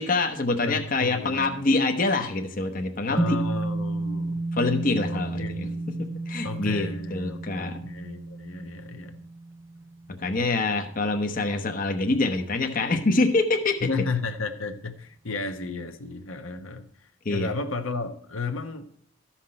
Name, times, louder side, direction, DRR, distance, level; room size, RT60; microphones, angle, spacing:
voice 1, 0.0-3.4 4.5-5.7 6.0-7.8 10.2-13.9 17.2-17.5, left 3 dB, 40° left, 5 dB, 0.9 m, -25 dB
voice 2, 0.7-1.6 3.1-4.5 5.1-5.8 6.4-9.2 13.8-16.9 17.3-18.9, left 3 dB, 80° left, 6 dB, 1.1 m, -33 dB
sound 1, 3.2-11.6, right 2 dB, 15° right, 0.3 m, -32 dB
14.0 x 5.9 x 4.3 m, 0.63 s
head